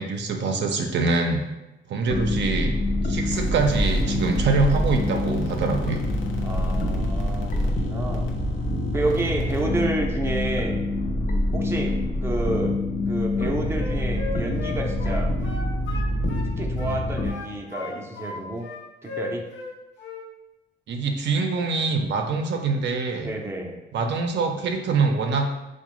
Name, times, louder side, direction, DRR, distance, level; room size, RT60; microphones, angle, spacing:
voice 1, 0.0-1.4 1.9-2.7 3.0-6.0 20.9-23.3 23.9-25.5, right 4 dB, 65° right, 3 dB, 0.5 m, -24 dB
sound 1, 2.1-17.3, left 1 dB, 40° left, 0.6 m, -26 dB
sound 2, 3.3-10.1, right 2 dB, 90° left, 0.6 m, -34 dB
voice 2, 6.4-8.3 8.9-10.8 11.5-15.3 16.6-18.6 19.0-19.5 23.2-23.8, right 2 dB, 10° right, 0 dB, 0.6 m, -30 dB
Wind instrument woodwind instrument, 13.3-16.5 16.8-18.4 18.6-19.7 20.0-20.3, left 3 dB, 60° left, 1.0 m, -36 dB
4.5 x 2.2 x 3.0 m, 0.99 s
cardioid pair, 90°, 20 cm